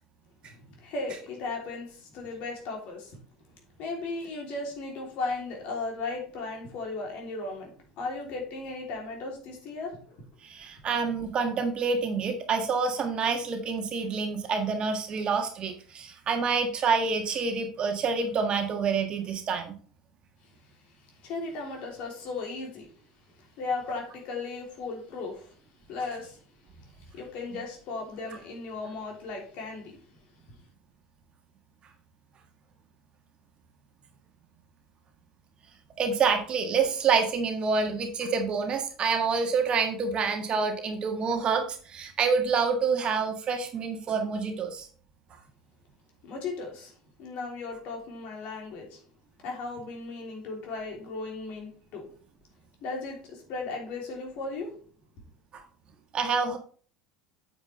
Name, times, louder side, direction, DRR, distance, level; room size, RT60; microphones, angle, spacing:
voice 1, 0.5-3.2 3.8-10.2 21.2-22.9 23.6-25.5 25.9-26.4 27.1-30.0 46.2-46.9 47.2-49.0 49.4-52.1 52.8-54.8, left 3 dB, 50° left, 3.1 m, -36 dB
voice 2, 10.4-19.7 36.0-44.9 55.5-55.6 56.1-56.6, right 5 dB, 35° right, 1.6 m, -27 dB
8.8 x 7.1 x 3.3 m
figure-of-eight pair, 70°, 3 cm